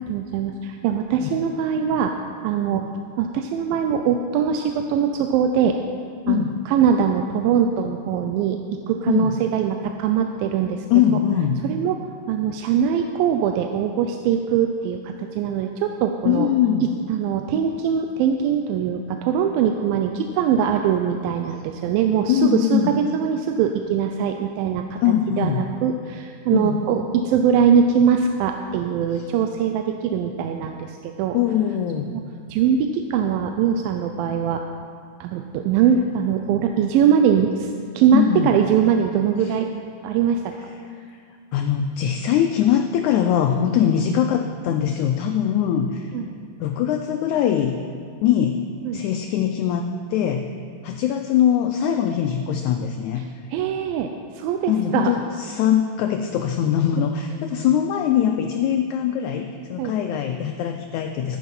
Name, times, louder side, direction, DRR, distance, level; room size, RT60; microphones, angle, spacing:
voice 1, 0.0-2.1 2.4-2.9 3.2-5.8 6.3-10.9 11.6-16.5 17.1-25.0 25.4-31.4 32.1-32.2 32.5-34.6 35.2-39.7 40.0-40.5 46.1-46.3 48.9-49.0 53.5-55.1 59.8-59.9, right 7 dB, 90° right, 5 dB, 2.4 m, -22 dB
voice 2, 6.3-6.6 9.1-9.4 10.9-11.6 16.2-16.9 22.3-23.0 25.0-25.6 26.5-26.8 29.1-29.3 31.3-32.2 38.1-38.6 39.4-39.6 41.1-41.2 41.5-46.2 46.6-47.8 48.2-48.6 48.9-50.5 50.8-53.2 54.7-61.4, left 9 dB, 85° left, 5 dB, 1.7 m, -22 dB
13.5 x 8.6 x 5.5 m, 2.2 s
omnidirectional pair, 4.0 m